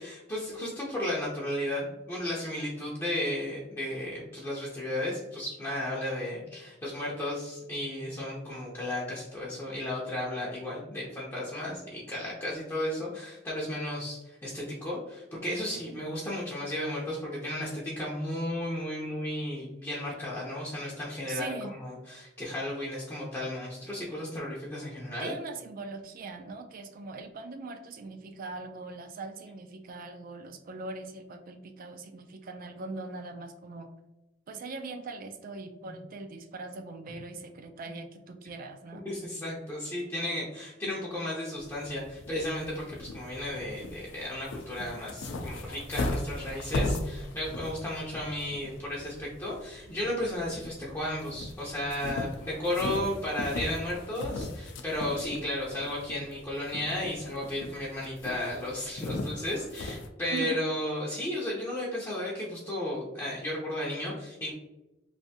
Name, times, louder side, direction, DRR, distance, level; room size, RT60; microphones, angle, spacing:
voice 1, 0.0-25.3 35.9-36.0 37.1-37.2 38.9-64.5, left 1 dB, 15° left, -6 dB, 0.5 m, -34 dB
voice 2, 21.3-21.7 25.2-33.9 34.5-39.0 60.3-60.6, right 3 dB, 50° right, 7 dB, 0.4 m, -41 dB
sound 1, 41.6-60.1, left 2 dB, 75° left, 0.4 m, -38 dB
3.3 x 2.6 x 2.7 m, 0.98 s
head